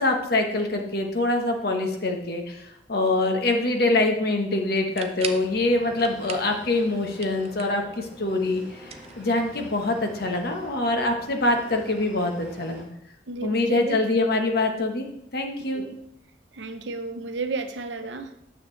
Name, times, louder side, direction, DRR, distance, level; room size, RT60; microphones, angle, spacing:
voice 1, 0.0-12.9 13.4-15.1 15.3-15.8, left 2 dB, 60° left, 4 dB, 1.2 m, -24 dB
sound 1, 4.7-5.5 6.0-6.6 6.9-7.9 8.8-9.7, right 6 dB, 35° right, 0.6 m, -38 dB
sound 2, 5.2-12.8, equal, 5° right, 3.0 m, -46 dB
voice 2, 13.3-14.0 15.7-15.9 16.5-18.5, right 3 dB, 80° right, 7 dB, 0.8 m, -32 dB
9.4 x 6.7 x 3.2 m, 0.77 s
head